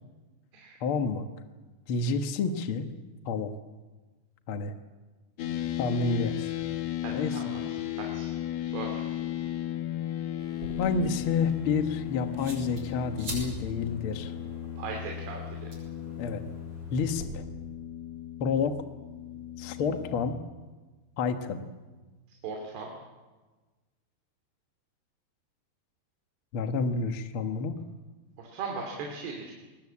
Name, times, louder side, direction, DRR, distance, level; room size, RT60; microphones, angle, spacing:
voice 1, 0.8-1.3 1.9-2.9 3.2-3.5 4.5-4.7 5.8-6.5 7.1-7.4 10.8-14.3 16.2-16.4 16.9-17.4 18.4-18.8 19.6-20.4 21.2-21.6 26.5-27.8, left 4 dB, 85° left, 7 dB, 1.1 m, -29 dB
sound 1, 5.4-20.4, left 12 dB, 60° left, 1.8 m, -35 dB
voice 2, 7.0-7.4 8.0-8.3 8.6-9.0 14.8-15.4 22.4-22.9 28.4-29.5, right 4 dB, 75° right, 1 dB, 4.7 m, -37 dB
sound 2, 10.4-17.2, right 1 dB, 35° right, 8.0 m, -45 dB
22.0 x 20.5 x 8.5 m, 1.2 s
omnidirectional pair, 4.7 m